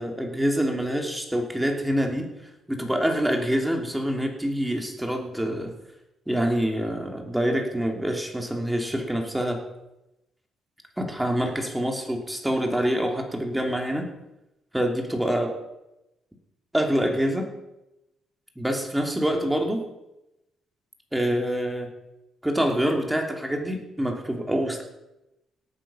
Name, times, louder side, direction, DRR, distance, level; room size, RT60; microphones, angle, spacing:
voice 1, 0.0-2.3 2.7-5.7 6.3-9.6 11.0-14.1 14.7-15.5 16.7-17.5 18.6-19.8 21.1-21.9 22.4-24.8, equal, 5° right, 3 dB, 3.0 m, -26 dB
18.0 x 9.3 x 5.7 m, 0.93 s
cardioid pair, 90°, 0 cm